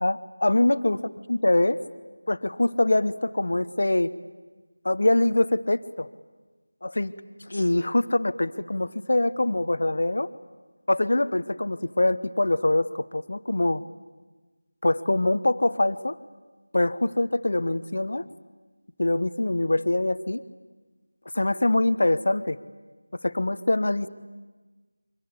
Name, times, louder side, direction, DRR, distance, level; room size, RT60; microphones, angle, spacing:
voice 1, 0.0-1.0 1.3-1.8 2.3-4.1 4.8-6.1 6.8-7.1 7.5-10.3 10.9-13.8 14.8-16.2 16.7-18.3 19.0-20.4 21.3-22.6 23.2-24.1, left 2 dB, 50° left, 13 dB, 1.1 m, -24 dB
24.5 x 24.5 x 8.3 m, 1.3 s
figure-of-eight pair, 170°, 0 cm